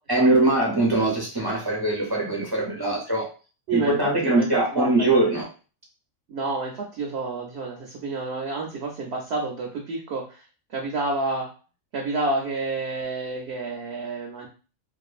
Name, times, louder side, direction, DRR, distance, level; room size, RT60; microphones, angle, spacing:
voice 1, 0.1-3.3 3.7-5.5, right 2 dB, 30° right, -3 dB, 0.4 m, -22 dB
voice 2, 4.2-5.3 6.3-10.4 10.7-11.5 11.9-14.5, right 3 dB, 60° right, 0 dB, 0.7 m, -29 dB
2.6 x 2.4 x 2.4 m, 0.35 s
omnidirectional pair, 1.4 m